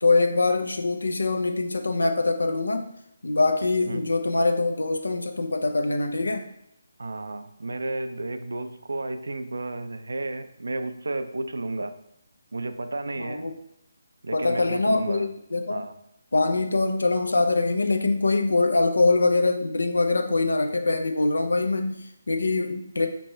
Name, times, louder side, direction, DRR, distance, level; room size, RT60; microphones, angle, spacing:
voice 1, 0.0-2.9 3.2-6.5 13.2-13.5 14.3-15.8 16.3-23.1, left 3 dB, 75° left, 5 dB, 0.5 m, -23 dB
voice 2, 7.0-12.0 12.5-13.5 14.2-15.3 15.7-15.9, right 2 dB, 70° right, 10 dB, 0.4 m, -32 dB
4.4 x 3.0 x 2.7 m, 0.76 s
figure-of-eight pair, 150°, 0 cm